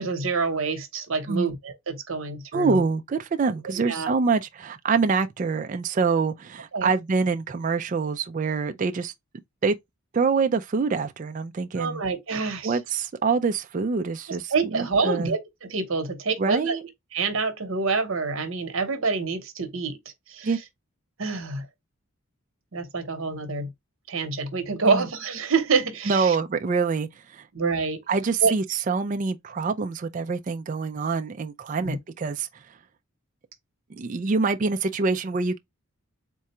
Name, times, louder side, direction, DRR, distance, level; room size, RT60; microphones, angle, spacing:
voice 1, 0.0-2.8 3.8-4.1 6.7-6.9 11.8-12.8 14.5-16.8 17.1-20.0 20.3-20.5 21.2-21.7 22.7-23.7 24.1-26.4 27.5-28.0 28.4-28.5 31.8-32.0, right 4 dB, 65° right, 0.9 m, -27 dB
voice 2, 2.5-9.1 9.6-9.7 10.1-12.0 12.6-15.3 16.4-16.8 20.4-20.6 24.8-25.1 26.1-27.5 28.1-32.6 33.9-35.6, right 4 dB, 35° right, 0.3 m, -25 dB
3.7 x 2.3 x 4.1 m
head